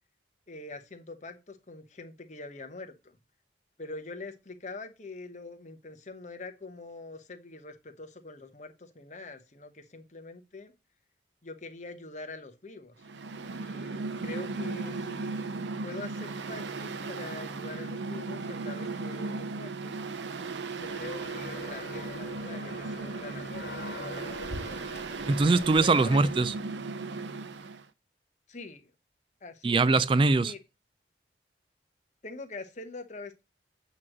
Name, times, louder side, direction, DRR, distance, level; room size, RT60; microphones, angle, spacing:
voice 1, 0.5-3.2 3.8-10.7 11.4-12.9 13.6-15.5 15.8-19.9 20.7-24.9 25.8-26.3 28.5-28.9 29.4-29.8 30.4-30.6 32.2-33.4, left 3 dB, 40° left, 1.0 m, -44 dB
Mechanical fan, 13.0-27.8, right 3 dB, 85° right, 0.6 m, -37 dB
sound 1, 20.8-25.8, left 2 dB, 60° left, 2.2 m, -43 dB
voice 2, 25.3-26.5 29.6-30.5, right 3 dB, 30° right, 0.3 m, -22 dB
8.4 x 3.1 x 6.0 m
head